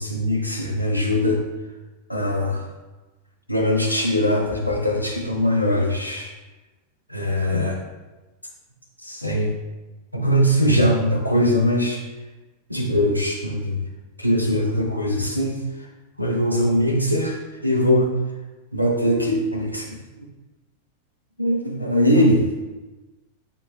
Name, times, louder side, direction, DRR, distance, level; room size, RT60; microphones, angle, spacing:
voice 1, 0.0-1.4 2.1-2.7 3.5-6.3 7.1-7.8 9.0-9.5 10.1-12.0 12.7-13.8 14.2-15.7 16.2-18.1 18.7-20.0 21.4-22.4, equal, 90° left, 0 dB, 1.1 m, -21 dB
11.5 x 5.5 x 2.3 m, 1.1 s
figure-of-eight pair, 90°, 0 cm